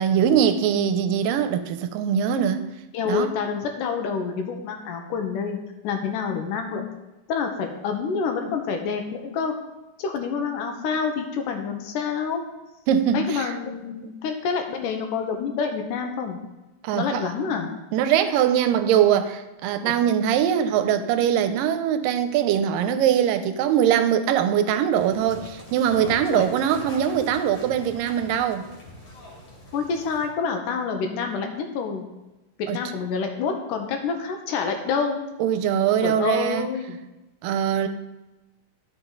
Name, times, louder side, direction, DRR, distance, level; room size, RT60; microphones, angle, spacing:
voice 1, 0.0-2.6 3.1-3.3 12.9-13.5 16.8-17.3 17.9-28.7 32.7-32.8 35.4-36.7 37.4-37.9, right 9 dB, 85° right, 10 dB, 2.3 m, -22 dB
voice 2, 2.9-5.6 5.8-6.9 7.3-9.5 10.0-12.4 13.1-16.4 16.9-17.8 19.8-19.9 26.3-26.5 29.7-32.0 32.6-35.2 36.0-37.0, left 5 dB, 80° left, 4 dB, 2.4 m, -27 dB
sound 1, 24.9-30.3, left 1 dB, 50° left, 3.2 m, -42 dB
11.5 x 5.8 x 3.8 m, 1.0 s
omnidirectional pair, 3.8 m